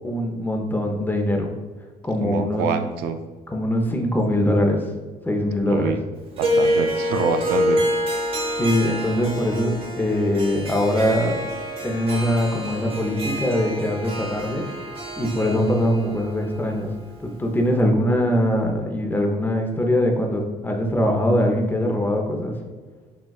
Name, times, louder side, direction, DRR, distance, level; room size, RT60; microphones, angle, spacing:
voice 1, 0.0-1.5 2.0-2.7 3.5-4.9 5.2-6.0 8.6-11.4 11.8-14.7 15.2-16.9 17.2-22.5, left 1 dB, 10° left, 2 dB, 0.6 m, -22 dB
voice 2, 2.2-3.2 5.7-6.0 6.4-7.8, right 5 dB, 80° right, 8 dB, 0.4 m, -26 dB
Harp, 6.4-17.7, equal, 35° right, 0.9 m, -27 dB
5.9 x 2.3 x 2.3 m, 1.4 s
cardioid pair, 110°, 17 cm